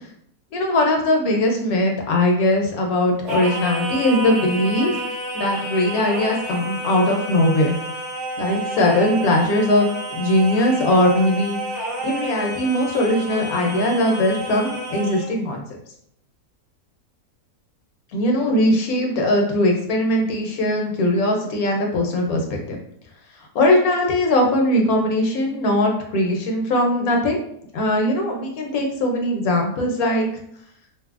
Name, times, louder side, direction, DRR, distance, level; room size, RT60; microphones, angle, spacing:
voice 1, 0.5-5.0 5.3-7.8 8.4-11.6 12.0-15.6 18.1-22.8 23.5-27.4 27.7-30.3, left 1 dB, 75° left, 2 dB, 1.0 m, -20 dB
Singing, 3.3-15.3, right 1 dB, 60° right, 0.9 m, -30 dB
2.7 x 2.6 x 2.4 m, 0.70 s
omnidirectional pair, 1.6 m